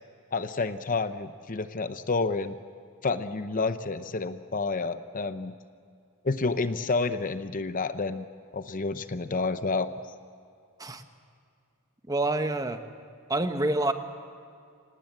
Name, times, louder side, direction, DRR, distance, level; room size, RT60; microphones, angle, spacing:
voice 1, 0.3-2.6 3.0-5.5 6.2-8.3 8.5-9.9, left 3 dB, 40° left, 11 dB, 0.7 m, -29 dB
voice 2, 12.1-12.8 13.3-13.9, right 2 dB, 15° right, 8 dB, 1.0 m, -27 dB
25.5 x 18.5 x 7.5 m, 2.4 s
head